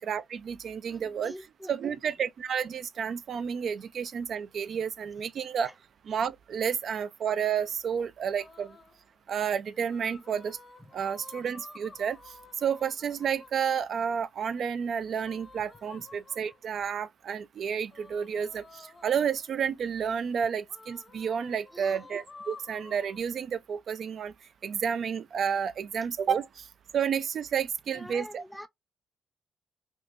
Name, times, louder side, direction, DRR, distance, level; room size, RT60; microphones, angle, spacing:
voice 1, 0.0-1.3 1.7-5.7 6.1-8.7 9.3-10.6 10.9-12.2 12.6-24.3 24.6-26.5 26.9-28.4, right 7 dB, 60° right, 0.3 m, -31 dB
voice 2, 0.9-1.9 4.7-4.8 5.6-5.7 10.8-10.9 21.7-22.1 27.9-28.7, equal, ahead, 0.5 m, -45 dB
sound 1, 8.4-9.0 9.7-13.8 15.2-16.7 17.9-19.6 20.7-23.2, left 3 dB, 35° left, 0.8 m, -51 dB
3.5 x 2.5 x 2.5 m
cardioid pair, 90°, 0 cm